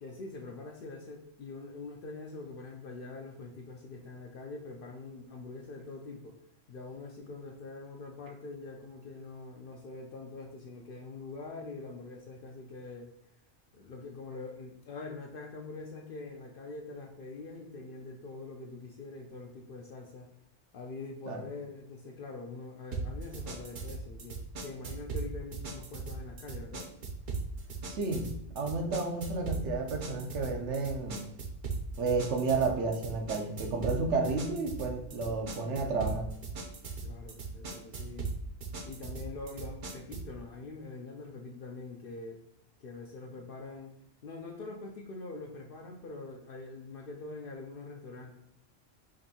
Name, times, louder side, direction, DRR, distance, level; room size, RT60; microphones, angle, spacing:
voice 1, 0.0-6.4 6.7-13.1 13.7-20.3 20.7-26.9 37.0-38.3 38.8-42.4 42.8-43.9 44.2-48.3, left 3 dB, 60° left, 1 dB, 0.6 m, -44 dB
sound 1, 22.9-40.4, right 4 dB, 55° right, 0.6 m, -39 dB
voice 2, 27.9-28.3 28.5-31.3 32.0-36.3, right 3 dB, 70° right, 3 dB, 1.0 m, -31 dB
5.1 x 2.6 x 2.7 m, 0.77 s
omnidirectional pair, 1.3 m